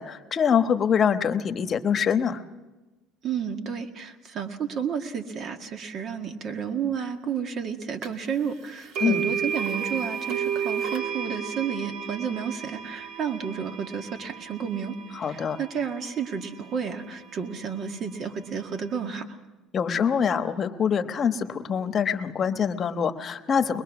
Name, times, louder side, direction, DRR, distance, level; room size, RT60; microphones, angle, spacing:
voice 1, 0.0-2.4 9.0-9.3 15.1-15.6 19.7-23.8, left 7 dB, 35° left, 9 dB, 1.2 m, -24 dB
voice 2, 3.2-15.0 15.3-19.4, right 7 dB, 50° right, 5 dB, 1.9 m, -31 dB
sound 1, 8.0-8.1 8.9-17.0, right 7 dB, 70° right, 2.2 m, -33 dB
22.5 x 21.5 x 6.1 m, 1.1 s
cardioid pair, 110°, 0 cm